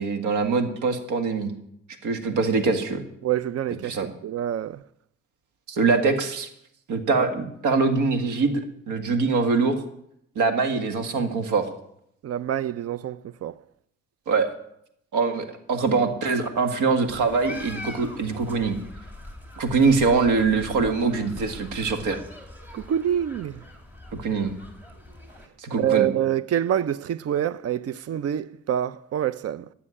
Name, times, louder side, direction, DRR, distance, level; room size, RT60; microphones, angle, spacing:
voice 1, 0.0-1.5 2.0-3.0 3.9-4.1 5.7-6.5 6.9-9.8 10.4-11.7 14.3-14.5 15.1-18.8 19.6-22.2 24.2-24.6 25.6-26.1, right 4 dB, 85° right, 1.9 m, -23 dB
voice 2, 3.2-4.8 7.2-7.3 12.2-13.6 22.7-23.6 25.8-29.7, right 10 dB, 55° right, 0.6 m, -26 dB
sound 1, 17.1-25.5, left 1 dB, 5° right, 2.9 m, -42 dB
12.5 x 6.9 x 9.8 m
cardioid pair, 90°, 30 cm